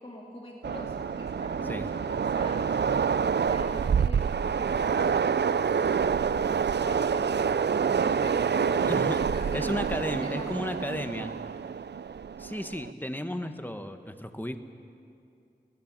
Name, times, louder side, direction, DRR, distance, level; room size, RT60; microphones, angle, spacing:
voice 1, 0.0-2.8 3.5-9.9 10.2-10.9, left 1 dB, 35° left, -3 dB, 3.1 m, -44 dB
Train, 0.6-12.9, right 6 dB, 85° right, 0.4 m, -27 dB
voice 2, 8.9-9.2 9.5-11.4 12.4-14.6, equal, 10° left, 7 dB, 1.4 m, -33 dB
22.5 x 18.0 x 7.5 m, 2.5 s
wide cardioid pair, 45°, 17 cm